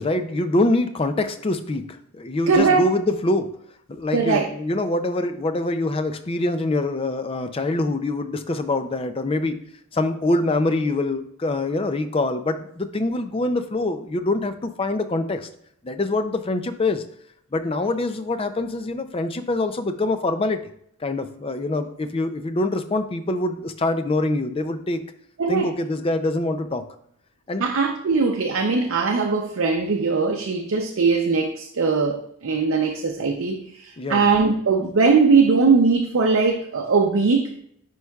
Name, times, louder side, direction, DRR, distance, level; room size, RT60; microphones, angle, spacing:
voice 1, 0.0-3.5 3.9-9.6 9.9-15.5 15.8-17.0 17.5-20.6 21.0-25.0 25.5-26.8 27.5-27.6 34.0-34.3, left 2 dB, 25° left, 0.4 m, -24 dB
voice 2, 2.5-2.8 4.1-4.5 25.4-25.7 27.6-37.5, right 4 dB, 75° right, 0.6 m, -20 dB
9.7 x 4.6 x 2.3 m
head